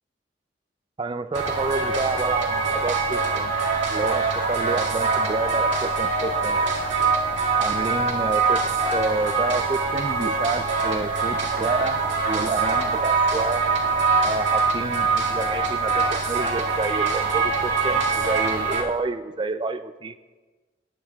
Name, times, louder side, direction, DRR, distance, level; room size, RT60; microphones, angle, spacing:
voice 1, 1.0-3.5 3.9-6.6 7.6-12.0 12.3-13.7 14.2-20.1, right 3 dB, 25° right, 11 dB, 0.4 m, -29 dB
sound 1, 1.3-18.8, right 4 dB, 90° right, 2.1 m, -23 dB
18.5 x 11.0 x 2.3 m, 1.3 s
head